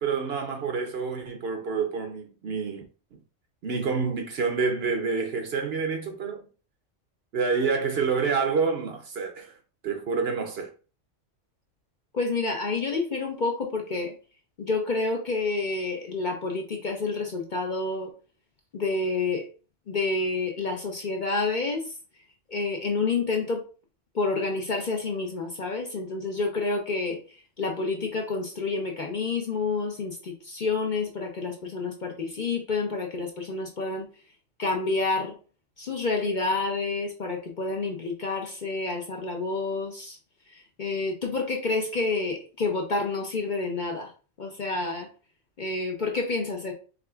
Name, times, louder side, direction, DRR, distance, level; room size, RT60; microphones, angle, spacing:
voice 1, 0.0-2.8 3.1-3.2 3.6-6.4 7.3-9.6 9.8-10.7, right 5 dB, 60° right, 0.8 m, -28 dB
voice 2, 12.1-14.1 14.6-18.1 18.7-19.5 19.9-22.0 22.5-23.6 24.1-34.1 34.6-35.3 35.8-40.2 40.5-44.1 44.4-45.1 45.6-46.7, left 3 dB, 45° left, 0.7 m, -29 dB
4.9 x 3.4 x 2.3 m
omnidirectional pair, 1.3 m